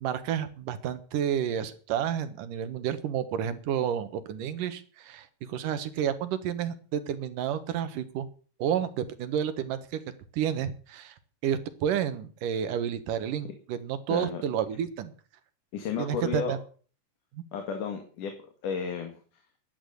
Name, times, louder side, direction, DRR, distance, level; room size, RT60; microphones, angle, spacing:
voice 1, 0.0-8.3 8.6-10.0 10.3-11.1 11.4-15.1 16.0-16.6, right 9 dB, 75° right, 11 dB, 2.9 m, -30 dB
voice 2, 14.1-14.4 15.7-16.6 17.5-18.4 18.6-19.2, left 6 dB, 70° left, 5 dB, 3.5 m, -32 dB
13.0 x 10.5 x 8.0 m, 0.41 s
omnidirectional pair, 3.9 m